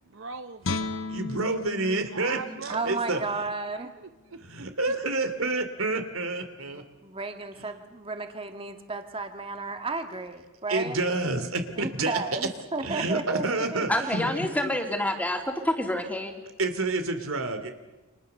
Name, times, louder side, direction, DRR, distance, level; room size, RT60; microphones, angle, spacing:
voice 1, 0.1-1.2 2.1-3.3 3.7-4.7, right 4 dB, 60° right, 8 dB, 0.9 m, -41 dB
Guitar, 0.6-3.8 4.2-4.4, left 3 dB, 65° left, 1.4 m, -36 dB
voice 2, 1.1-3.2 4.4-6.8 7.6-7.7 10.7-12.5 12.8-14.5 16.6-17.7, right 2 dB, 80° right, 8 dB, 2.9 m, -29 dB
voice 3, 2.7-3.9 6.7-11.0 11.8-13.4 13.7-14.1, right 3 dB, 25° right, 6 dB, 2.1 m, -33 dB
voice 4, 13.9-16.4, left 1 dB, 5° left, 3 dB, 3.0 m, -28 dB
29.5 x 26.0 x 6.8 m, 1.1 s
head